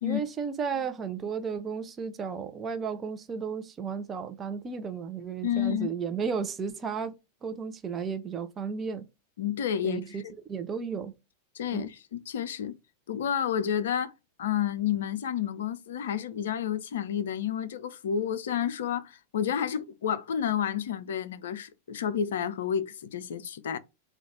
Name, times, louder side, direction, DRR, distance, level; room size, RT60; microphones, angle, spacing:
voice 1, 0.0-7.1 7.4-9.0 9.8-10.2 10.5-11.1 11.7-11.9, right 6 dB, 25° right, 0.5 m, -33 dB
voice 2, 5.4-5.9 9.4-10.3 11.5-12.7 13.1-14.1 14.4-23.8, left 9 dB, 60° left, 0.4 m, -30 dB
3.9 x 2.3 x 4.3 m
figure-of-eight pair, 90°, 0 cm